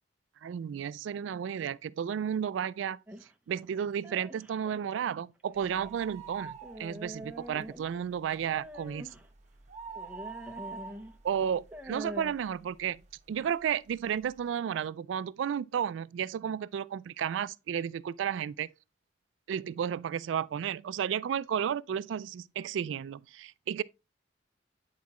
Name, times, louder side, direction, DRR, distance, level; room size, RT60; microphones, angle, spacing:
voice 1, 0.4-3.0 3.5-9.1 11.2-13.0 13.3-18.7 19.5-23.8, right 8 dB, 85° right, 0.3 m, -33 dB
sound 1, 3.1-4.8 5.5-6.0 6.6-8.0 8.5-9.3 10.0-11.1 11.6-12.3, equal, 10° right, 0.7 m, -44 dB
sound 2, 5.6-7.2 7.5-7.6 8.1-12.5 13.0-13.1 13.9-14.0 14.2-14.3, right 5 dB, 40° right, 1.0 m, -45 dB
9.3 x 4.7 x 3.0 m
head